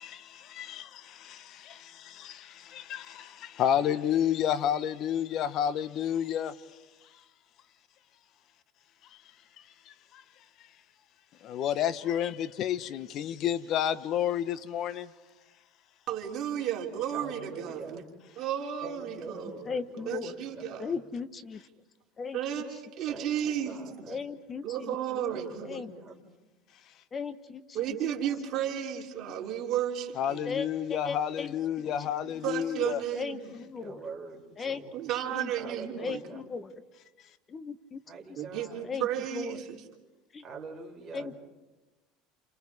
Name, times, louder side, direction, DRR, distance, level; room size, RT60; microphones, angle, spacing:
voice 1, 0.0-6.8 9.1-9.2 9.6-10.2 10.6-10.7 11.4-15.1 30.2-33.0, left 9 dB, 50° left, 1.1 m, -31 dB
voice 2, 16.1-18.0 18.4-19.5 20.1-20.9 22.3-24.1 24.6-25.8 27.7-30.4 32.4-33.5 34.9-36.2 38.4-39.8, right 10 dB, 50° right, 3.4 m, -33 dB
voice 3, 17.1-18.0 18.8-20.9 23.1-24.2 25.2-26.2 31.4-31.5 31.8-32.2 33.8-35.0 35.6-36.4 38.1-38.9 40.4-41.3, right 4 dB, 25° right, 4.2 m, -44 dB
voice 4, 19.6-20.5 20.8-21.6 22.2-22.6 24.1-25.0 25.6-25.9 27.1-28.0 29.3-29.4 30.4-32.1 33.1-34.0 34.6-34.8 35.1-35.5 36.0-36.7 37.5-38.0 38.3-38.4 38.8-39.7 40.3-40.4 41.1-41.3, left 5 dB, 25° left, 1.1 m, -37 dB
29.0 x 28.5 x 4.9 m
supercardioid pair, 115°, 0 cm